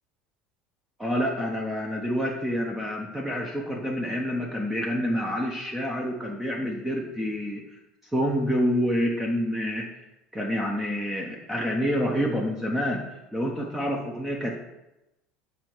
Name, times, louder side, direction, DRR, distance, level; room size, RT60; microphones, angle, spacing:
voice 1, 1.0-7.6 8.1-9.9 10.3-14.6, equal, 10° right, 0 dB, 1.1 m, -28 dB
6.1 x 4.2 x 4.7 m, 0.93 s
hypercardioid pair, 70°, 3 cm